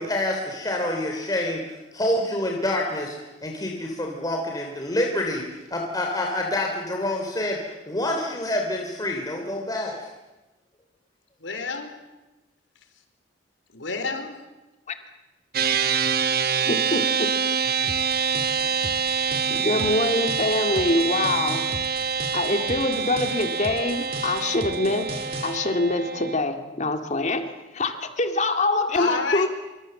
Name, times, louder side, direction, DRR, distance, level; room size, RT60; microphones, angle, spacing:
voice 1, 0.0-3.1 3.4-10.1, left 1 dB, 20° left, 1 dB, 3.2 m, -27 dB
voice 2, 11.4-11.9 13.7-14.4 28.9-29.5, left 4 dB, 85° left, 7 dB, 4.2 m, -29 dB
sound 1, 15.5-26.4, right 6 dB, 55° right, 1.0 m, -26 dB
voice 3, 16.5-17.4 18.6-18.8 19.5-21.7 22.3-29.5, left 2 dB, 40° left, 6 dB, 2.2 m, -25 dB
sound 2, 17.9-25.6, right 2 dB, 35° right, 2.2 m, -37 dB
26.0 x 25.5 x 7.7 m, 1.1 s
head